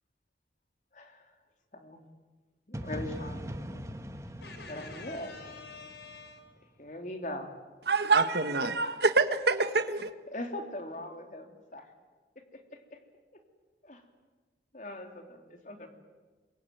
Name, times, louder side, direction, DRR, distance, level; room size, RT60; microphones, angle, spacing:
voice 1, 0.9-1.3 1.7-2.0 2.7-3.4 3.7-3.9 4.6-5.4 6.8-7.5 10.3-11.9 12.3-13.0 13.8-14.0 14.7-15.9, left 1 dB, 45° left, 3.3 m, -41 dB
sound 1, 2.7-6.6, equal, 15° right, 1.4 m, -41 dB
voice 2, 4.4-6.5, left 4 dB, 80° left, 5.7 m, -47 dB
voice 3, 7.9-10.1, right 3 dB, 70° right, 1.6 m, -26 dB
26.5 x 23.0 x 9.4 m
head